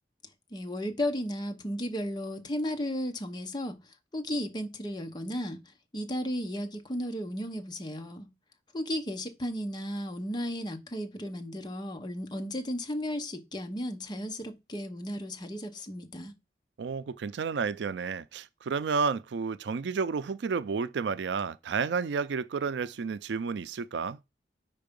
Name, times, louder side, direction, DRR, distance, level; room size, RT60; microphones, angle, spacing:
voice 1, 0.5-5.6 5.9-8.3 8.7-16.3, equal, 25° left, 0.9 m, -34 dB
voice 2, 16.8-24.2, right 5 dB, 80° right, 0.4 m, -31 dB
5.6 x 4.7 x 5.2 m
head